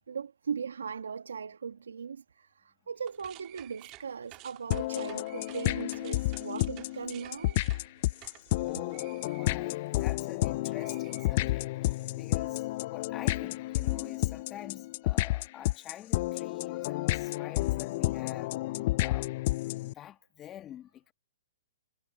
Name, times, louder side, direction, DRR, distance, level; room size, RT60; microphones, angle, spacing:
voice 1, 0.1-2.5 2.9-7.6, right 6 dB, 80° right, 1.4 m, -38 dB
sound 1, 3.0-10.4 10.7-11.9, right 20 dB, 35° right, 1.8 m, -53 dB
sound 2, 3.9-14.5, left 6 dB, 80° left, 6.7 m, -66 dB
sound 3, 4.7-19.9, left 18 dB, 45° left, 0.6 m, -31 dB
voice 2, 8.6-18.6 19.0-19.4 19.8-21.1, left 11 dB, 25° left, 1.7 m, -46 dB
hypercardioid pair, 125°, 0 cm